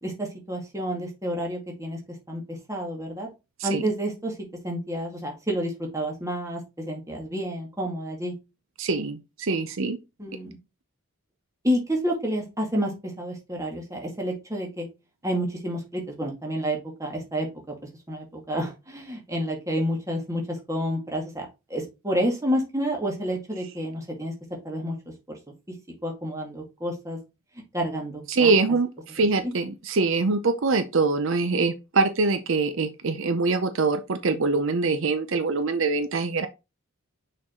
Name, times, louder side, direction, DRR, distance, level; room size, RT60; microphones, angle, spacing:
voice 1, 0.0-2.0 2.3-2.4 2.7-3.3 3.6-4.3 4.6-6.6 6.9-8.3 10.2-10.6 11.6-12.9 13.2-14.9 15.2-17.7 18.1-20.4 20.7-21.5 21.7-24.3 24.6-25.0 25.3-25.4 26.0-27.2 27.7-28.5, equal, 15° right, 1.9 m, -29 dB
voice 2, 8.8-10.0 28.3-36.5, right 3 dB, 65° right, 0.6 m, -24 dB
6.2 x 4.6 x 3.7 m
head